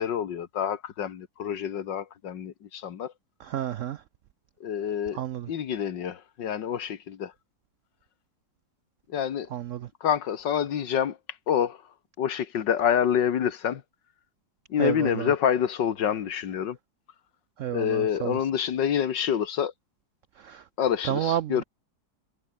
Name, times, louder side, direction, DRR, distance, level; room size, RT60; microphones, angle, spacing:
voice 1, 0.0-3.1 4.6-5.2 5.5-7.3 9.1-9.5 10.0-11.2 11.5-11.8 12.2-13.8 14.7-16.8 17.7-19.7 20.8-21.6, left 8 dB, 75° left, 2.0 m, -27 dB
voice 2, 3.4-4.0 5.1-5.5 9.5-9.9 14.8-15.3 17.6-18.4 20.4-20.6 21.0-21.6, right 11 dB, 85° right, 0.6 m, -30 dB
omnidirectional pair, 2.0 m